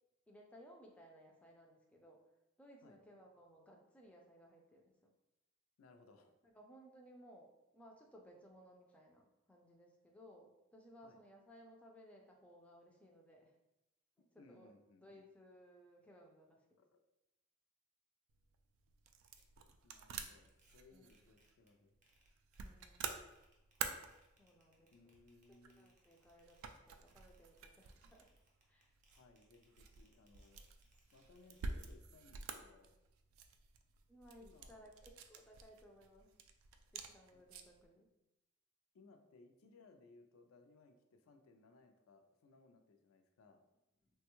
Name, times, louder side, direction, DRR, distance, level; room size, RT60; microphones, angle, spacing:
voice 1, 0.3-2.2 2.6-5.1 6.4-13.5 14.2-14.7 15.0-16.8 20.9-21.2 22.6-23.1 24.4-24.9 25.5-28.3 28.7-28.9 30.5-30.7 34.1-36.4 36.9-38.1, equal, 5° left, 0 dB, 0.3 m, -61 dB
voice 2, 5.8-6.3 11.0-11.2 14.2-15.2 16.8-16.9 19.8-22.0 24.9-25.9 29.1-30.6 31.1-32.9 34.4-34.9 37.3-37.4 38.9-43.6, left 3 dB, 85° left, 5 dB, 0.4 m, -65 dB
sound 1, 18.3-37.9, right 5 dB, 80° right, 0.3 m, -50 dB
sound 2, 19.4-19.5 19.9-20.0 20.3-20.7 21.1-21.7 22.0-31.9, right 2 dB, 40° right, 0.6 m, -74 dB
3.3 x 2.2 x 2.9 m, 0.93 s
head